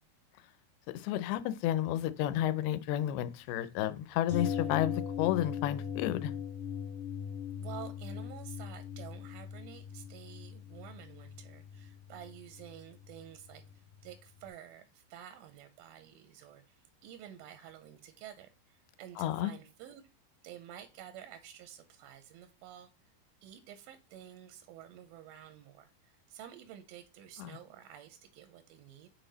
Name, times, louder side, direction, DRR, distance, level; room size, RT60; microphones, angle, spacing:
voice 1, 0.9-6.3 19.2-19.5 27.4-27.5, left 12 dB, 90° left, 2.5 m, -31 dB
sound 1, 4.3-14.2 14.5-14.6, left 8 dB, 40° left, 1.7 m, -40 dB
voice 2, 7.6-20.0 20.4-23.1 23.4-29.1, right 10 dB, 80° right, 2.2 m, -50 dB
6.5 x 4.0 x 3.9 m
omnidirectional pair, 4.4 m